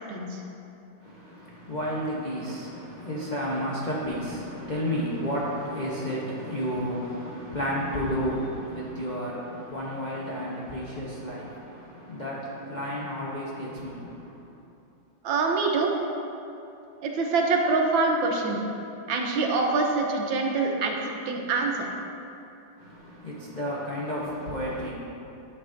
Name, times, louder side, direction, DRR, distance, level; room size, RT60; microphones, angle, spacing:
voice 1, 0.1-0.4 15.2-15.9 17.0-18.6 19.1-20.9 21.3-21.7, right 3 dB, 75° right, 0 dB, 1.6 m, -25 dB
voice 2, 1.0-14.5 22.8-24.9, equal, 90° left, -6 dB, 0.4 m, -32 dB
11.0 x 6.8 x 2.6 m, 2.8 s
omnidirectional pair, 2.2 m